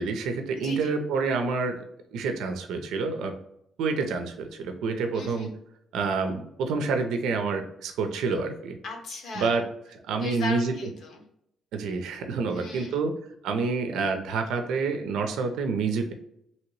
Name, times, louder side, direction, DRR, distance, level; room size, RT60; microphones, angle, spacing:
voice 1, 0.0-1.8 2.1-3.3 3.8-5.5 5.9-8.8 9.3-9.6 10.1-10.7 11.7-13.1 13.4-16.1, right 4 dB, 85° right, 5 dB, 0.5 m, -28 dB
voice 2, 0.6-0.9 5.1-5.5 8.8-9.6 10.2-11.2 12.5-13.0, left 3 dB, 75° left, 2 dB, 0.9 m, -37 dB
2.8 x 2.8 x 3.0 m, 0.76 s
cardioid pair, 90°, 0 cm